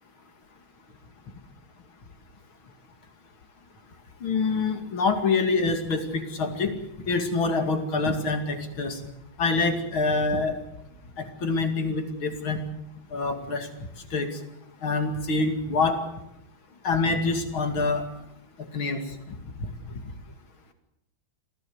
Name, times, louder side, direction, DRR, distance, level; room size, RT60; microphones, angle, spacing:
voice 1, 4.2-6.8 7.1-9.0 9.4-10.6 11.2-12.6 13.1-13.7 14.1-14.3 14.8-16.0 16.8-18.1 18.7-19.0, left 3 dB, 85° left, 6 dB, 3.4 m, -25 dB
26.5 x 16.0 x 8.1 m, 0.83 s
omnidirectional pair, 2.2 m